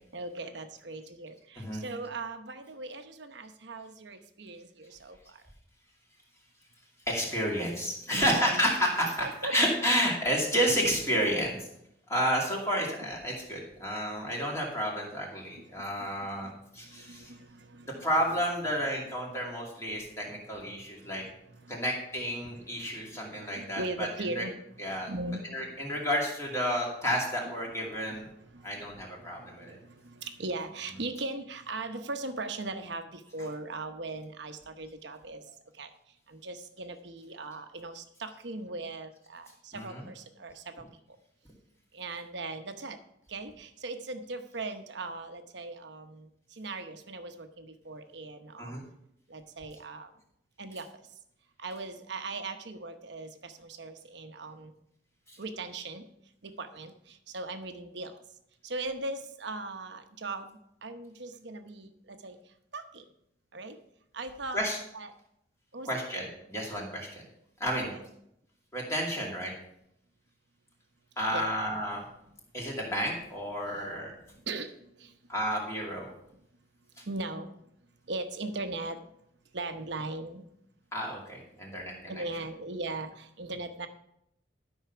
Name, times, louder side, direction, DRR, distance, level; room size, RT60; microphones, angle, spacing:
voice 1, 0.1-5.4 8.1-8.7 9.2-9.6 15.6-18.1 19.9-20.0 20.3-20.4 20.6-20.7 21.0-21.8 22.4-22.5 22.7-26.0 28.1-35.9 36.3-40.8 41.9-43.0 43.3-48.7 49.3-50.1 50.6-50.9 51.6-54.7 55.4-56.0 56.4-58.1 58.6-62.4 62.7-63.0 63.5-63.8 64.1-64.6 64.9-65.1 65.7-66.1 67.7-68.1 71.3-71.5 74.5-74.7 75.0-75.1 77.1-77.5 78.1-79.0 79.5-80.4 82.0-83.9, right 2 dB, 65° right, 7 dB, 0.9 m, -39 dB
voice 2, 7.1-11.7 12.1-17.3 18.0-21.2 21.7-24.1 24.4-24.5 24.8-25.1 25.5-28.3 28.6-29.8 39.7-40.1 48.6-48.8 55.3-55.4 64.5-64.8 65.9-67.2 67.6-68.0 68.7-69.5 71.2-72.0 72.5-74.1 75.3-76.1 77.0-77.1 80.9-82.2, equal, 15° left, -3 dB, 2.4 m, -31 dB
12.5 x 5.6 x 5.8 m, 0.77 s
head